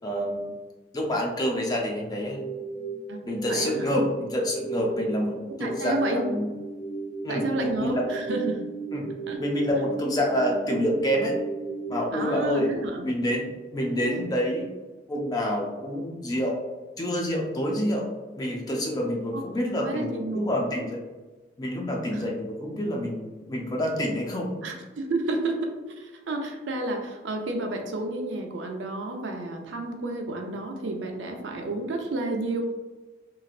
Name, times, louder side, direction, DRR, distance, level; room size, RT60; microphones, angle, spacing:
voice 1, 0.0-0.5 0.9-2.4 3.2-6.5 7.2-8.2 8.9-9.1 9.4-11.3 11.9-12.7 13.0-13.4 13.7-14.7 15.1-16.6 17.0-18.1 18.3-21.0 21.6-24.6, equal, 20° left, 0 dB, 0.4 m, -27 dB
sound 1, 2.1-12.0, right 4 dB, 70° left, 1.1 m, -36 dB
voice 2, 3.5-4.0 5.5-6.3 7.3-8.6 9.3-9.4 12.1-13.0 19.3-19.4 19.8-20.5 22.1-22.2 24.6-32.6, right 2 dB, 85° right, 3 dB, 0.5 m, -31 dB
3.1 x 2.4 x 2.4 m, 1.2 s
head